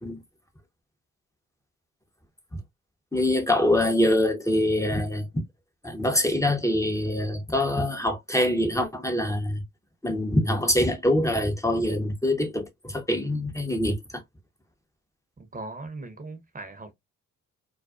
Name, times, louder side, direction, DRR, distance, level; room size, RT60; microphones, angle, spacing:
voice 1, 3.1-5.3 5.8-9.6 10.0-14.2, left 1 dB, 10° left, 0.7 m, -24 dB
voice 2, 15.4-16.9, right 2 dB, 25° right, 0.8 m, -39 dB
2.3 x 2.2 x 2.3 m
hypercardioid pair, 50°, 35 cm